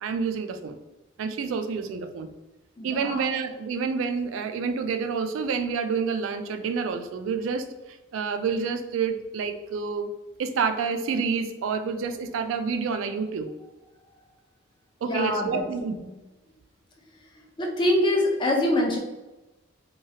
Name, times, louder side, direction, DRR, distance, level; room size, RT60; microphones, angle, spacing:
voice 1, 0.0-0.8 1.2-2.3 2.8-10.1 10.4-13.5 15.0-16.0, right 5 dB, 80° right, 9 dB, 0.3 m, -28 dB
voice 2, 2.8-3.3 15.0-15.6 15.9-16.0 17.4-19.0, left 1 dB, 25° left, 0 dB, 0.5 m, -25 dB
3.0 x 2.3 x 2.7 m, 1.0 s
head